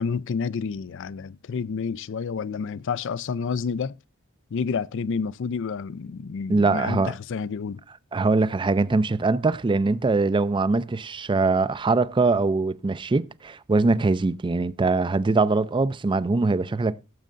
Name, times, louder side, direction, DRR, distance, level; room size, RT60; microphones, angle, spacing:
voice 1, 0.0-3.9 4.5-7.8, left 5 dB, 60° left, 0.4 m, -29 dB
voice 2, 6.5-7.1 8.1-17.0, right 3 dB, 25° right, 0.4 m, -22 dB
17.5 x 7.4 x 2.5 m
head